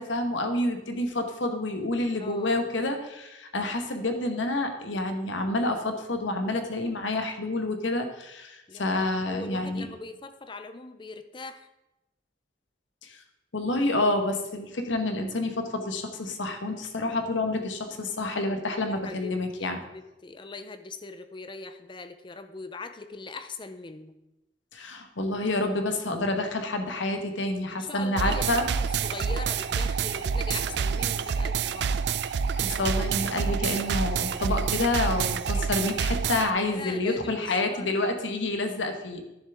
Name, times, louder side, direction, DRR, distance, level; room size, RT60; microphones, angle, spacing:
voice 1, 0.0-9.9 13.0-13.2 13.5-19.8 24.7-28.7 32.6-39.2, left 2 dB, 80° left, 6 dB, 1.2 m, -28 dB
voice 2, 2.2-2.6 8.7-11.7 18.9-24.2 27.7-32.1 36.7-38.0, left 3 dB, 25° left, 10 dB, 0.5 m, -41 dB
sound 1, 28.2-36.5, right 6 dB, 60° right, 0.4 m, -28 dB
11.0 x 7.0 x 3.5 m, 0.93 s
head